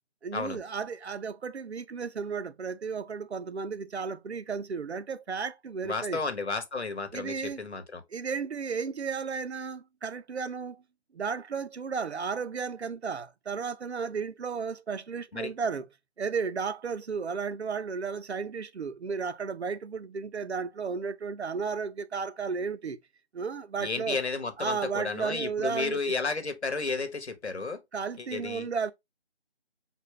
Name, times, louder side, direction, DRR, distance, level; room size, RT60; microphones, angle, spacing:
voice 1, 0.2-6.2 7.1-7.6 8.1-10.8 11.1-15.8 16.2-23.0 23.3-24.2 24.6-26.0 27.9-28.9, right 5 dB, 70° right, 0.6 m, -33 dB
voice 2, 5.8-8.0 15.3-15.5 23.8-27.8 28.2-28.7, left 4 dB, 75° left, 1.0 m, -32 dB
4.2 x 2.3 x 3.1 m
figure-of-eight pair, 165°, 33 cm